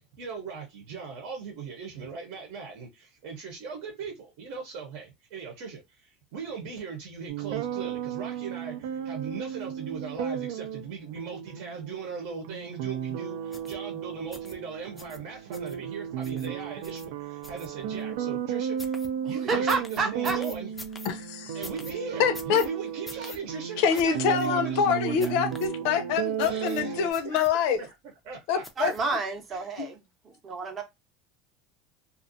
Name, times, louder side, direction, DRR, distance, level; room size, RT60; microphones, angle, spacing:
voice 1, 0.0-19.0 19.2-20.7 21.0-21.1 21.5-25.4 26.3-27.9 28.2-28.9 29.5-29.7, right 5 dB, 60° right, 0.9 m, -39 dB
sound 1, 7.3-27.1, right 8 dB, 80° right, 0.4 m, -34 dB
sound 2, 13.5-13.7 14.3-14.5 15.0-15.2 15.5-15.8 16.2-16.5 16.8-17.1 17.4-18.0 18.8-19.1 19.7-21.1 21.6-21.9 22.3-22.7 23.1-23.4 23.9-24.0 24.3-24.5 25.2-25.7 26.4-26.8 27.1-27.8 28.6-29.1 29.5-29.6, left 2 dB, 10° left, 0.4 m, -44 dB
voice 2, 19.5-20.4 28.8-30.0 30.4-30.8, right 4 dB, 25° right, 0.7 m, -29 dB
voice 3, 21.0-21.6 22.2-22.6 23.8-27.8 28.5-28.9 29.8-29.9, left 7 dB, 65° left, 0.5 m, -25 dB
2.5 x 2.2 x 2.5 m
supercardioid pair, 150°, 0 cm